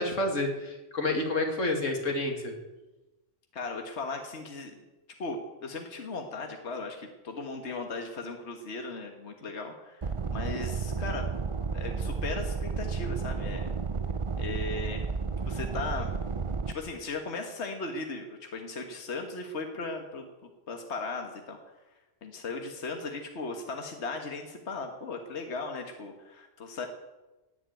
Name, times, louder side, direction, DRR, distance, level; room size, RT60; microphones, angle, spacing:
voice 1, 0.0-2.5, left 2 dB, 90° left, 3 dB, 2.8 m, -29 dB
voice 2, 3.5-4.7 5.2-11.3 11.7-13.7 14.4-15.1 15.5-16.1 16.7-20.3 20.7-21.6 22.2-26.9, left 3 dB, 60° left, 4 dB, 1.8 m, -37 dB
sound 1, 10.0-16.7, right 5 dB, 30° right, 0.6 m, -32 dB
17.5 x 8.3 x 9.0 m, 1.1 s
omnidirectional pair, 1.3 m